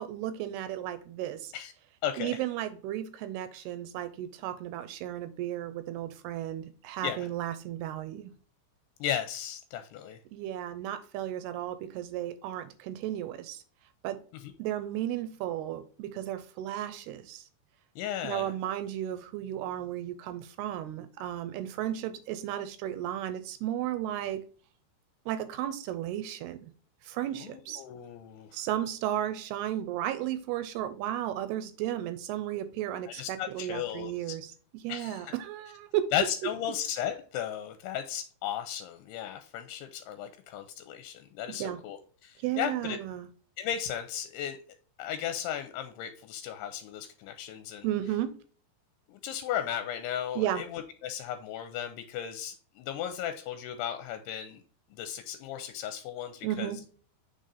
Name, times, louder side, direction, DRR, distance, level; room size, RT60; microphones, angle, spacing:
voice 1, 0.0-1.5 2.2-8.3 10.3-13.6 14.0-14.2 14.6-17.5 18.2-24.5 25.3-26.6 27.0-27.8 28.5-36.1 41.5-41.8 42.4-43.3 47.8-48.4 50.4-50.6 56.4-56.8, right 12 dB, 80° right, 2.4 m, -34 dB
voice 2, 2.0-2.4 7.0-7.3 9.0-10.2 14.3-14.5 18.0-18.5 27.3-28.6 33.1-34.4 34.9-35.3 36.1-43.0 43.6-44.6 45.0-47.9 49.1-54.6 54.9-56.8, left 10 dB, 85° left, 2.6 m, -35 dB
6.4 x 3.8 x 4.0 m
omnidirectional pair, 4.8 m